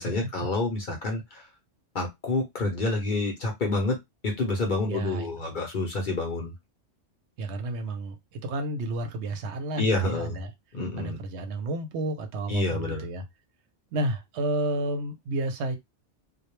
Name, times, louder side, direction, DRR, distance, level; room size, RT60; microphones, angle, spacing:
voice 1, 0.0-1.5 1.9-4.0 4.2-6.5 9.8-10.4 10.7-11.2 12.5-13.0, left 2 dB, 50° left, 0.7 m, -28 dB
voice 2, 4.9-5.6 7.4-10.5 11.0-13.2 13.9-15.8, right 2 dB, 70° right, 0.8 m, -31 dB
2.2 x 2.1 x 3.0 m
omnidirectional pair, 1.2 m